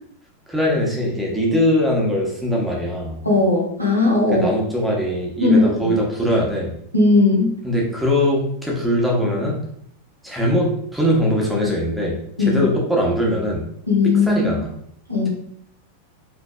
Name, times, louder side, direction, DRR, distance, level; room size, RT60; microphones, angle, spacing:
voice 1, 0.5-3.2 4.3-6.8 7.6-9.6 10.2-13.6 14.0-14.7, equal, 5° right, -3 dB, 1.2 m, -21 dB
voice 2, 3.2-4.5 5.4-5.9 6.9-7.5 12.4-12.7 13.9-14.5 15.1-15.3, left 3 dB, 90° right, -5 dB, 1.5 m, -17 dB
5.4 x 3.2 x 2.4 m, 0.68 s
figure-of-eight pair, 90°, 0 cm